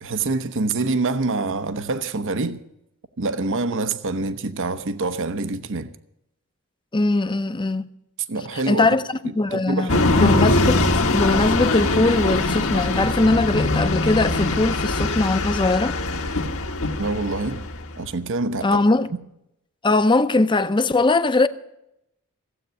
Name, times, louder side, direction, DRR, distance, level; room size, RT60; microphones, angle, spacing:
voice 1, 0.0-2.6 3.2-5.9 8.3-8.9 9.5-10.2 17.0-17.6 18.0-18.8, right 3 dB, 60° right, 0.8 m, -26 dB
voice 2, 6.9-7.9 8.7-9.0 9.4-9.9 10.2-10.8 11.1-16.0 18.6-19.1 19.8-21.5, left 2 dB, 20° left, 0.7 m, -20 dB
sound 1, 9.9-17.9, left 2 dB, 65° left, 1.6 m, -22 dB
15.5 x 8.2 x 8.2 m
head